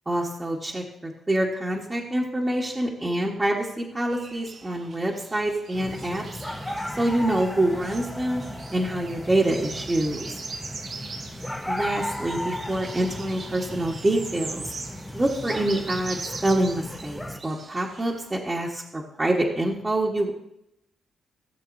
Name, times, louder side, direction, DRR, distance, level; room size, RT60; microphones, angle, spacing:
voice 1, 0.1-6.2 6.9-8.4 8.7-10.4 11.7-14.7 15.1-20.3, right 1 dB, 20° right, -3 dB, 1.3 m, -26 dB
sound 1, 4.1-18.4, right 4 dB, 50° right, 1.2 m, -41 dB
sound 2, 5.7-17.4, left 1 dB, 10° left, 0.8 m, -36 dB
16.0 x 7.5 x 2.7 m, 0.81 s
cardioid pair, 90°, 0 cm